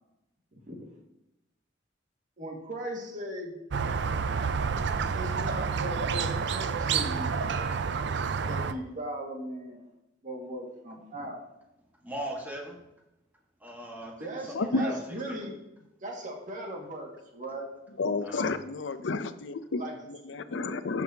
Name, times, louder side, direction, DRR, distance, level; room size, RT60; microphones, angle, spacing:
voice 1, 2.4-3.6 5.1-7.4 8.5-9.8 10.2-11.4 14.2-15.6 16.0-17.7 19.7-19.9, right 1 dB, 45° right, 0 dB, 1.9 m, -38 dB
Squeak, 3.7-8.7, right 5 dB, 65° right, 0.5 m, -29 dB
voice 2, 12.0-12.8 13.6-14.9 15.3-15.4 18.2-18.5, right 1 dB, 10° right, 0 dB, 1.5 m, -39 dB
voice 3, 14.5-14.9 18.0-19.8 20.1-21.0, left 3 dB, 75° left, 11 dB, 0.6 m, -31 dB
12.5 x 6.2 x 2.8 m, 0.90 s
head